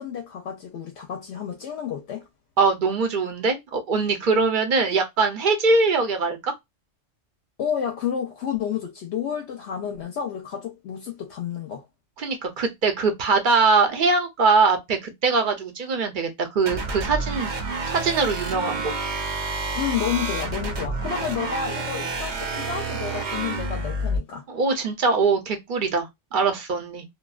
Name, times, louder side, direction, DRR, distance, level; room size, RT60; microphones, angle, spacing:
voice 1, 0.0-2.2 7.6-11.8 19.7-24.4, left 8 dB, 70° left, 0.8 m, -30 dB
voice 2, 2.6-6.5 12.2-17.5 17.9-18.9 24.5-27.0, right 4 dB, 50° right, 0.7 m, -22 dB
sound 1, 16.7-24.2, right 2 dB, 70° right, 1.0 m, -29 dB
2.6 x 2.2 x 2.3 m
omnidirectional pair, 1.2 m